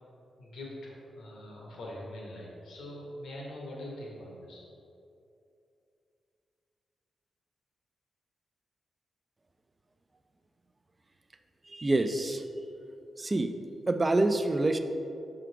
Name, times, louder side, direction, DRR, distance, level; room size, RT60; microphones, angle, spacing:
voice 1, 0.4-4.7, left 1 dB, 85° left, -3 dB, 1.2 m, -43 dB
voice 2, 11.6-12.5 13.2-13.6 13.9-14.8, right 2 dB, 25° right, 8 dB, 0.4 m, -27 dB
5.8 x 3.8 x 4.6 m, 2.7 s
cardioid pair, 105°, 0 cm